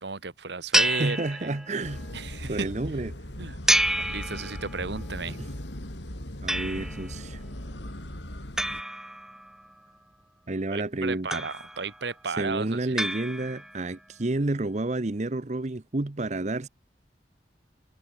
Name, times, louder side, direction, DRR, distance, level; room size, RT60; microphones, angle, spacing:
voice 1, 0.0-1.5 2.1-2.7 3.4-3.6 4.0-5.4 10.7-13.0, right 4 dB, 75° right, 1.5 m, -34 dB
sound 1, 0.7-1.9 3.7-4.9 6.5-7.2 8.6-9.7 11.3-12.0 13.0-13.9, right 1 dB, 5° right, 0.3 m, -28 dB
voice 2, 0.9-2.1 2.5-3.1 5.3-5.5 6.4-7.4 10.5-11.4 12.3-16.7, right 2 dB, 40° right, 0.8 m, -30 dB
sound 2, 1.8-8.8, left 1 dB, 80° left, 4.5 m, -38 dB
head